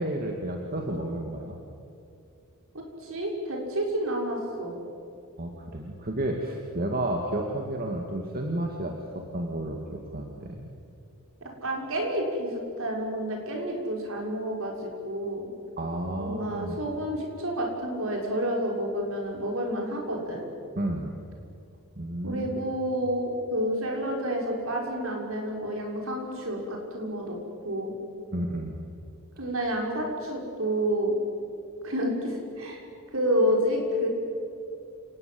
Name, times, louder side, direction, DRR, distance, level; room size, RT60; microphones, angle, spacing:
voice 1, 0.0-1.6 5.4-9.8 10.1-10.7 15.8-16.8 20.8-21.1 22.0-22.6 28.3-28.8, right 1 dB, 45° right, 1 dB, 2.3 m, -31 dB
voice 2, 2.7-4.8 11.4-15.5 16.2-20.4 22.2-27.4 27.6-27.9 29.4-31.1 31.8-32.8 33.1-34.1, equal, 65° right, 0 dB, 6.0 m, -29 dB
29.0 x 19.0 x 8.0 m, 2.5 s
head